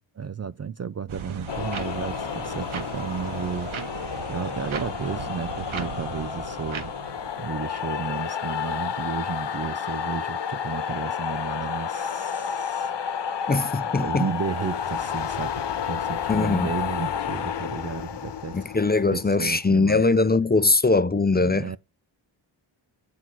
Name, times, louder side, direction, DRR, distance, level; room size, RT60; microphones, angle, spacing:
voice 1, 0.2-3.7 4.3-6.9 7.4-13.5 14.0-18.6 19.1-20.0 21.4-21.8, right 7 dB, 35° right, 0.4 m, -33 dB
sound 1, 1.1-7.9, right 6 dB, 75° right, 1.7 m, -37 dB
sound 2, 1.5-20.0, left 8 dB, 55° left, 1.2 m, -31 dB
voice 2, 13.5-14.3 16.3-16.7 18.5-21.8, left 3 dB, 20° left, 0.6 m, -21 dB
9.5 x 6.1 x 4.5 m
cardioid pair, 85°, 49 cm